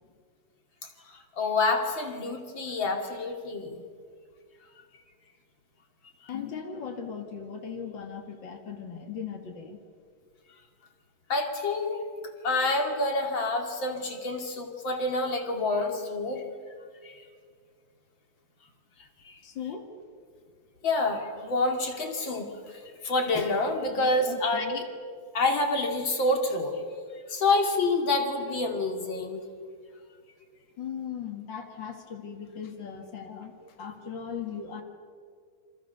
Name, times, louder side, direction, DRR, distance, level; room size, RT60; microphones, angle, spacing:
voice 1, 1.1-3.8 11.3-12.0 12.4-16.4 17.0-17.1 19.2-19.4 20.8-24.8 25.3-26.8 27.3-29.4, left 2 dB, 35° left, 4 dB, 2.4 m, -28 dB
voice 2, 6.3-9.8 19.4-19.9 24.0-24.8 30.8-34.8, left 7 dB, 60° left, 4 dB, 1.2 m, -38 dB
28.5 x 26.5 x 6.8 m, 2.2 s
omnidirectional pair, 5.0 m